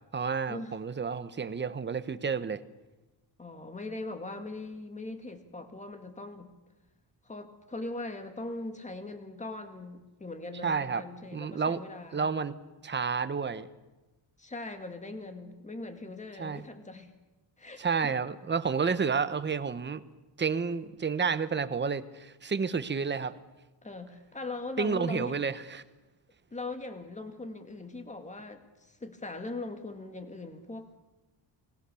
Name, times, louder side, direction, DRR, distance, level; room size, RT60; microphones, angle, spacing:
voice 1, 0.1-2.6 10.6-11.0 11.3-11.8 12.1-12.5 12.8-13.7 16.4-16.6 17.8-20.0 20.4-23.3 24.8-25.8, right 5 dB, 25° right, 13 dB, 1.0 m, -30 dB
voice 2, 3.4-6.5 7.2-12.3 14.4-17.1 17.6-18.1 23.8-25.4 26.5-31.0, left 2 dB, 15° left, 7 dB, 2.1 m, -40 dB
29.0 x 19.5 x 7.0 m, 1.1 s
wide cardioid pair, 170°, 44 cm